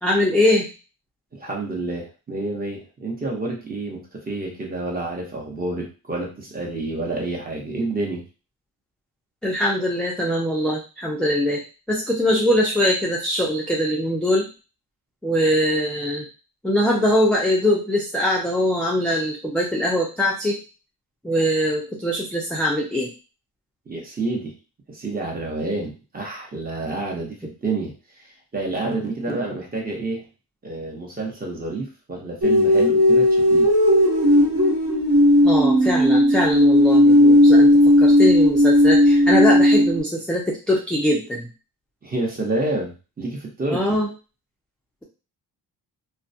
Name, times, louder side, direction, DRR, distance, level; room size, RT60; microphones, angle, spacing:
voice 1, 0.0-0.7 9.4-11.6 11.9-14.5 15.2-16.3 16.6-20.6 21.2-23.1 35.4-41.5 43.7-44.1, left 1 dB, 5° left, -3 dB, 0.4 m, -22 dB
voice 2, 1.3-8.2 23.9-24.5 24.9-27.9 28.2-30.3 30.6-33.7 42.0-44.0, right 2 dB, 20° right, -1 dB, 0.8 m, -29 dB
sound 1, 32.4-40.0, left 1 dB, 50° right, 1.1 m, -15 dB
2.2 x 2.1 x 2.6 m, 0.32 s
cardioid pair, 95°, 40 cm